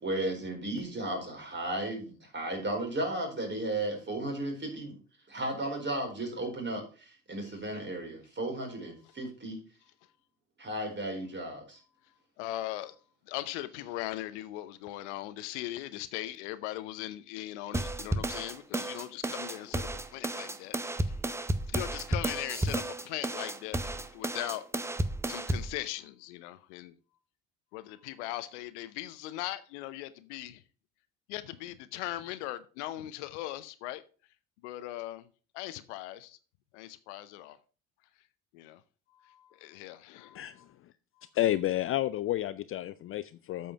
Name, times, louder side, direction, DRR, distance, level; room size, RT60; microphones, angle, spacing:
voice 1, 0.0-5.0 5.3-9.6 10.6-11.8, right 1 dB, 30° right, 4.5 m, -34 dB
voice 2, 12.4-13.0 13.3-21.1 21.7-25.0 25.3-27.0 27.7-30.6 31.3-34.0 34.6-35.3 35.5-36.4 36.7-37.6 38.5-38.8 39.1-40.6 41.2-41.3, left 15 dB, 70° left, 0.7 m, -39 dB
sound 1, 17.7-25.7, right 1 dB, 5° right, 0.7 m, -32 dB
voice 3, 41.3-43.7, left 14 dB, 35° left, 0.4 m, -30 dB
8.4 x 5.5 x 5.6 m
figure-of-eight pair, 55°, 37 cm